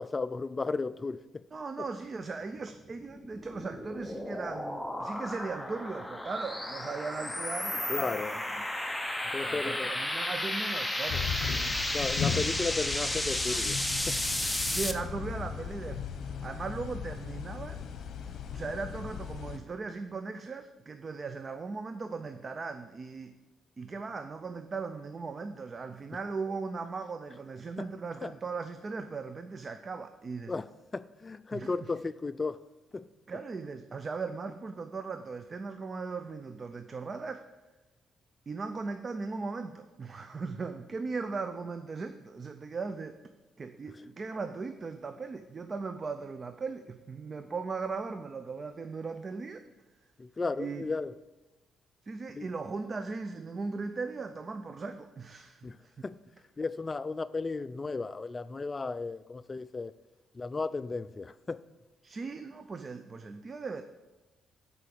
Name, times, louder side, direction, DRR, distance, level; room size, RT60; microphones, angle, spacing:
voice 1, 0.0-1.4 1.8-1.9 7.9-8.4 9.3-9.9 11.9-14.2 27.8-27.9 28.2-28.3 30.5-32.6 32.9-33.1 50.2-51.2 52.3-52.5 55.6-55.8 56.0-56.2 56.6-59.9 60.3-61.6, left 3 dB, 30° left, 0.3 m, -34 dB
voice 2, 1.5-8.4 9.4-11.9 14.7-16.1 16.4-17.8 18.5-23.4 23.8-30.5 31.5-31.7 33.3-37.4 38.5-43.2 43.6-49.6 50.6-50.8 52.1-55.9 62.0-63.8, right 4 dB, 35° right, 0.5 m, -38 dB
sound 1, 2.9-14.9, left 1 dB, 5° left, 0.8 m, -33 dB
sound 2, 11.1-19.6, left 7 dB, 65° left, 1.0 m, -37 dB
7.7 x 4.9 x 6.8 m
cardioid pair, 90°, 0 cm